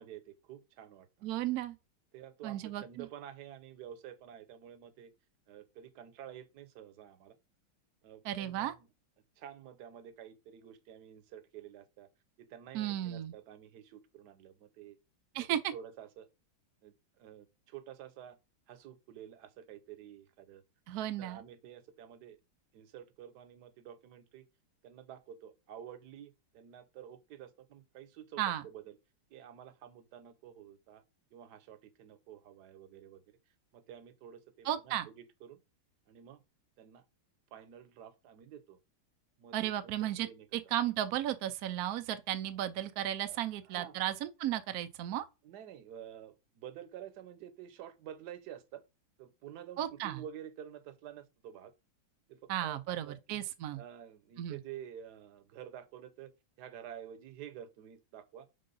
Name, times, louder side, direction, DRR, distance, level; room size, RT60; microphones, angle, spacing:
voice 1, 0.0-1.4 2.1-5.1 5.5-7.4 8.0-8.9 9.4-12.1 12.4-15.0 15.3-16.3 16.8-18.4 18.7-20.6 21.2-22.4 22.7-24.4 24.8-28.9 29.3-31.0 31.3-33.4 33.7-35.6 36.1-36.4 36.8-37.1 37.5-38.8 39.4-40.6 43.2-44.0 45.4-48.8 49.2-51.7 52.3-53.4 53.8-56.3 56.6-58.5, right 10 dB, 65° right, 1.1 m, -50 dB
voice 2, 1.2-1.7 2.4-3.1 8.2-8.7 12.7-13.3 15.3-15.7 20.9-21.4 28.4-28.6 34.6-35.1 39.5-40.3 40.7-45.2 49.8-50.2 52.5-53.8 54.4-54.6, right 12 dB, 90° right, 0.8 m, -34 dB
5.3 x 3.8 x 5.4 m
omnidirectional pair, 2.3 m